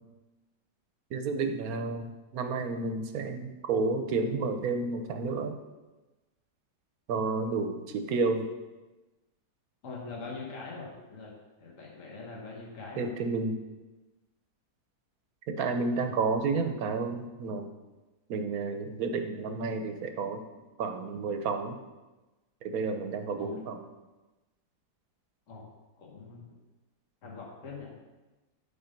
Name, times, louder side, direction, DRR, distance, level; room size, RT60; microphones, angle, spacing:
voice 1, 1.1-5.6 7.1-8.5 13.0-13.6 15.5-17.7 18.3-20.4 20.8-21.8 22.6-23.8, right 4 dB, 65° right, 6 dB, 1.2 m, -31 dB
voice 2, 9.8-11.3 11.6-13.1 23.4-23.6 25.5-25.7 26.0-26.5 27.2-27.9, left 4 dB, 50° left, -2 dB, 1.8 m, -42 dB
10.5 x 4.3 x 5.2 m, 1.1 s
omnidirectional pair, 1.8 m